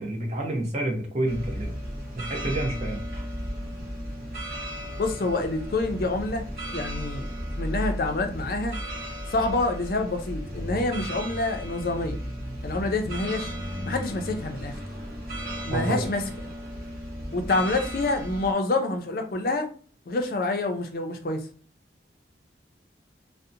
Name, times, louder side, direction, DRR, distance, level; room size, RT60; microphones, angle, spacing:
voice 1, 0.0-1.7 2.2-3.0 15.7-16.1, right 1 dB, 40° right, 1 dB, 0.6 m, -29 dB
sound 1, 1.3-18.5, equal, 55° right, 1.0 m, -35 dB
voice 2, 5.0-6.5 6.7-7.3 7.6-8.8 9.3-12.2 12.6-13.5 13.9-14.8 15.7-16.2 17.3-19.7 20.1-21.4, left 2 dB, 50° left, 5 dB, 0.4 m, -27 dB
2.7 x 2.0 x 2.5 m, 0.41 s
head